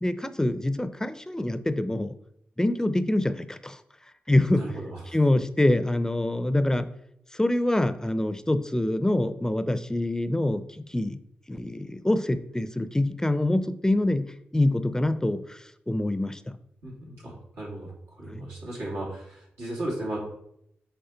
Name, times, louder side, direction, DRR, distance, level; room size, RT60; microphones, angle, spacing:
voice 1, 0.0-2.1 2.6-3.8 4.3-4.6 5.1-6.9 7.3-11.2 11.5-16.5 18.3-18.4, left 1 dB, 15° left, 11 dB, 0.5 m, -25 dB
voice 2, 4.5-5.2 16.8-20.2, right 1 dB, 90° right, -6 dB, 2.6 m, -35 dB
6.9 x 3.6 x 3.9 m, 0.73 s
cardioid pair, 50°, 4 cm